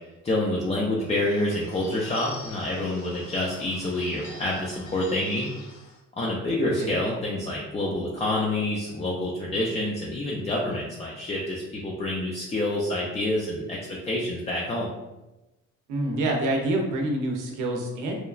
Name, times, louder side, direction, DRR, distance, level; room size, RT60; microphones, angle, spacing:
voice 1, 0.2-5.5 6.2-14.9, left 1 dB, 20° left, -4 dB, 0.4 m, -27 dB
Bird / Bell, 1.0-6.0, left 3 dB, 65° left, 0.6 m, -45 dB
voice 2, 15.9-18.1, right 1 dB, 90° right, 1 dB, 0.6 m, -27 dB
3.0 x 2.3 x 2.3 m, 1.0 s
cardioid pair, 90°, 30 cm